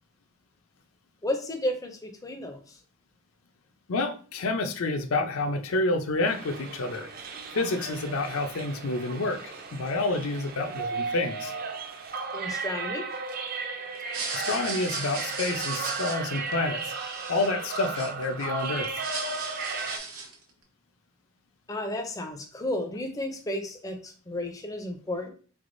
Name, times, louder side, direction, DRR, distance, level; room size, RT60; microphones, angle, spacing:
voice 1, 1.2-2.8 12.3-13.1 21.7-25.3, left 1 dB, 15° left, 4 dB, 0.4 m, -33 dB
voice 2, 3.9-7.1 7.5-11.5 14.3-19.1, left 2 dB, 80° left, 7 dB, 0.5 m, -29 dB
sound 1, 6.2-20.0, right 4 dB, 45° right, 0.4 m, -35 dB
sound 2, 14.0-18.5 18.8-20.4, right 4 dB, 90° right, 0.9 m, -37 dB
3.7 x 3.4 x 2.5 m, 0.40 s
head